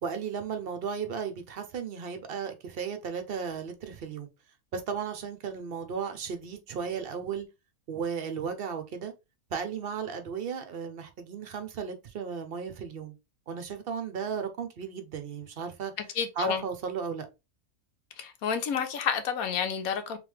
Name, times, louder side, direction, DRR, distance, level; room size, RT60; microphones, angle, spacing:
voice 1, 0.0-4.3 4.7-7.5 7.9-9.1 9.5-13.1 13.5-15.9 16.4-17.3, right 6 dB, 55° right, 0.7 m, -35 dB
voice 2, 16.2-16.6 18.2-20.2, left 7 dB, 80° left, 1.2 m, -30 dB
3.5 x 3.5 x 3.1 m
omnidirectional pair, 1.5 m